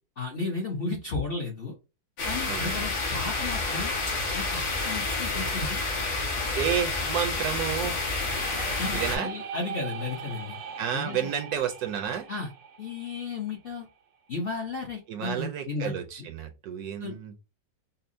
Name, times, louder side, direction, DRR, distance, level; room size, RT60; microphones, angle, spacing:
voice 1, 0.2-1.7 2.3-3.9 4.3-5.8 8.8-10.6 10.9-11.2 12.3-12.5 12.8-13.9 14.3-15.9 17.0-17.4, left 3 dB, 55° left, 0.6 m, -34 dB
sound 1, 2.2-9.2, left 3 dB, 80° left, 2.0 m, -29 dB
voice 2, 6.6-8.0 8.9-9.3 10.8-12.2 15.1-17.3, right 8 dB, 70° right, 1.0 m, -30 dB
sound 2, 8.1-13.9, right 7 dB, 90° right, 1.3 m, -41 dB
5.4 x 2.0 x 2.5 m
omnidirectional pair, 1.9 m